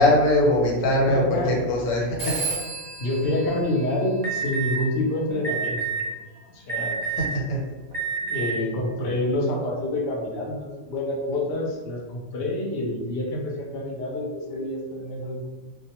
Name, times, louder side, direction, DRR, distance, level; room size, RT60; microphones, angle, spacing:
voice 1, 0.0-2.3 7.2-7.6, left 1 dB, 85° left, -3 dB, 1.1 m, -21 dB
voice 2, 1.1-1.7 3.0-6.1 6.5-7.0 8.2-15.5, left 1 dB, 60° left, -2 dB, 0.7 m, -27 dB
Telephone, 2.2-4.7, right 4 dB, 20° left, 0.6 m, -33 dB
Alarm, 4.2-4.8 5.4-6.0 6.7-7.3 7.9-8.5, right 6 dB, 40° right, 0.5 m, -28 dB
2.2 x 2.2 x 2.8 m, 1.3 s
omnidirectional pair, 1.3 m